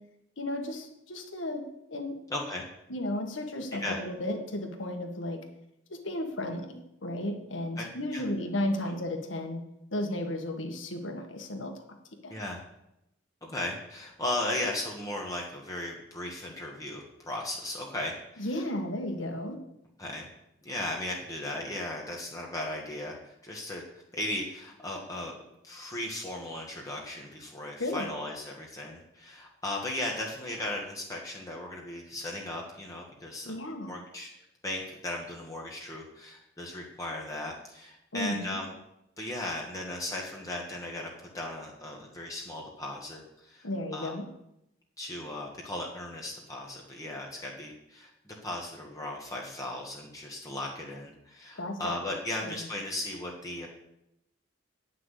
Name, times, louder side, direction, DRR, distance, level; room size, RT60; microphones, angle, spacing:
voice 1, 0.4-1.6 1.9-2.2 2.9-5.4 5.9-9.6 9.9-11.7 12.2-12.3 18.4-19.6 27.8-28.1 33.4-33.9 38.1-38.6 43.6-44.2 51.6-52.0 52.4-52.7, left 1 dB, 80° left, 4 dB, 1.6 m, -34 dB
voice 2, 2.3-2.6 3.8-4.0 7.8-8.2 12.3-12.6 13.4-18.6 20.0-20.3 20.6-23.8 24.1-25.3 25.6-33.5 33.9-34.3 34.6-38.7 39.2-44.1 45.0-53.7, left 1 dB, 15° left, -2 dB, 1.5 m, -36 dB
9.8 x 5.9 x 8.3 m, 0.84 s
head